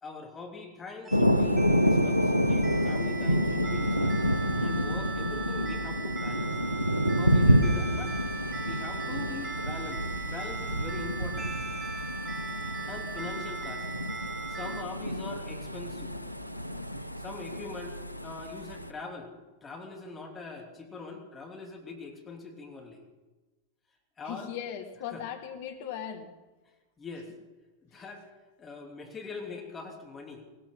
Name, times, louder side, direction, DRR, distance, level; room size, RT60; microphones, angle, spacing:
voice 1, 0.0-4.2 4.6-6.6 7.2-8.2 8.6-11.5 12.9-13.9 14.5-16.2 17.2-19.3 19.6-23.0 24.2-24.5 25.1-25.2 27.0-27.3 27.8-28.3 28.6-30.4, left 4 dB, 20° left, 2 dB, 3.0 m, -42 dB
sound 1, 1.0-14.8, right 4 dB, 20° right, 0.9 m, -39 dB
Thunder, 1.1-18.9, equal, 90° right, 0.8 m, -28 dB
voice 2, 24.3-26.3 27.9-28.1, left 9 dB, 50° left, 5 dB, 2.2 m, -38 dB
19.5 x 19.0 x 3.9 m, 1.2 s
figure-of-eight pair, 90°, 0 cm